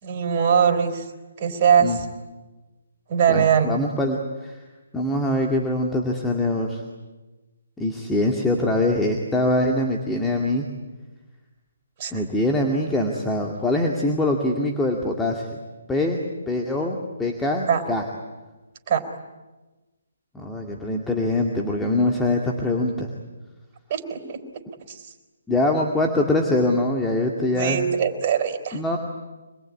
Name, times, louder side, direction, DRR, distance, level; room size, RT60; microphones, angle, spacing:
voice 1, 0.0-1.0 1.4-2.1 3.1-3.7 12.0-12.2 17.7-17.8 18.9-19.0 23.9-24.4 24.9-25.0 27.5-28.8, right 8 dB, 35° right, 5 dB, 4.4 m, -21 dB
voice 2, 3.3-4.6 4.9-6.8 7.8-10.7 12.1-15.5 15.9-16.2 16.5-18.0 20.3-23.1 25.5-27.8 28.7-29.0, left 1 dB, 5° left, 0 dB, 2.2 m, -23 dB
26.0 x 21.5 x 9.9 m, 1.2 s
hypercardioid pair, 150°, 0 cm